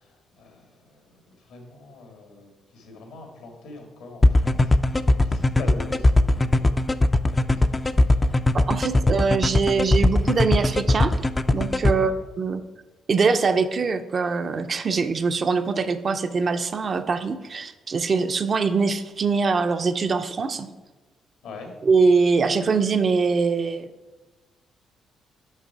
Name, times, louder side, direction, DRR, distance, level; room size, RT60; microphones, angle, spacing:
voice 1, 0.0-4.8 5.2-6.8 7.3-7.8 8.1-8.6 11.9-12.2 21.4-21.7, left 3 dB, 85° left, 2 dB, 1.8 m, -43 dB
sound 1, 4.2-11.9, left 2 dB, 20° left, 0.4 m, -18 dB
voice 2, 8.7-11.1 11.5-12.6 13.1-20.7 21.8-23.9, right 4 dB, 45° right, 9 dB, 0.5 m, -23 dB
6.6 x 5.7 x 4.6 m, 1.2 s
cardioid pair, 90°, 0 cm